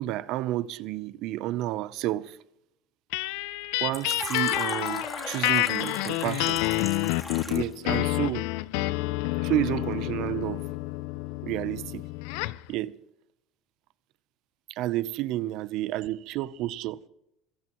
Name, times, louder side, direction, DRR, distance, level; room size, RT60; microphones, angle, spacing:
voice 1, 0.0-2.4 3.8-6.6 7.5-8.5 9.4-10.7 11.4-12.0 12.7-13.0 14.7-17.0, right 15 dB, 65° right, 0.7 m, -30 dB
sound 1, 3.1-12.7, left 20 dB, 85° left, 0.5 m, -29 dB
Fill (with liquid), 3.9-7.8, left 2 dB, 15° left, 3.1 m, -37 dB
25.5 x 15.0 x 3.1 m
cardioid pair, 120°, 0 cm